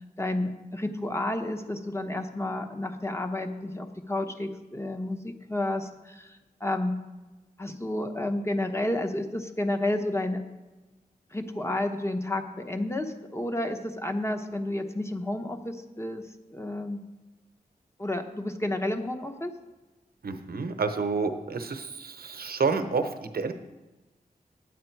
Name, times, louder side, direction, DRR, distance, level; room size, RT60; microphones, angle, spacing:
voice 1, 0.2-6.3 6.6-6.9 7.6-10.4 11.3-16.2 16.5-17.0 18.0-19.5, left 1 dB, 15° left, 5 dB, 0.9 m, -31 dB
voice 2, 20.2-23.5, right 4 dB, 80° right, 8 dB, 0.8 m, -29 dB
9.8 x 8.5 x 4.6 m, 1.1 s
wide cardioid pair, 90°, 16 cm